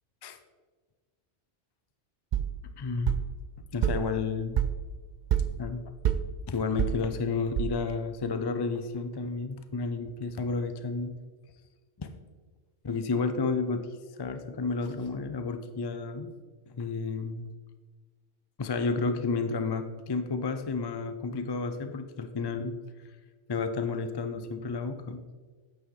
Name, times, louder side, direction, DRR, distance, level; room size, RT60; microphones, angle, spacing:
sound 1, 2.3-8.1, right 9 dB, 60° right, 0.5 m, -31 dB
voice 1, 2.8-3.2 3.7-4.7 5.6-5.8 6.5-11.1 12.0-12.1 12.8-13.9 14.2-16.3 16.7-17.5 18.6-22.8 23.5-25.2, left 4 dB, 35° left, 9 dB, 0.4 m, -31 dB
9.1 x 8.3 x 3.9 m, 1.4 s
omnidirectional pair, 1.2 m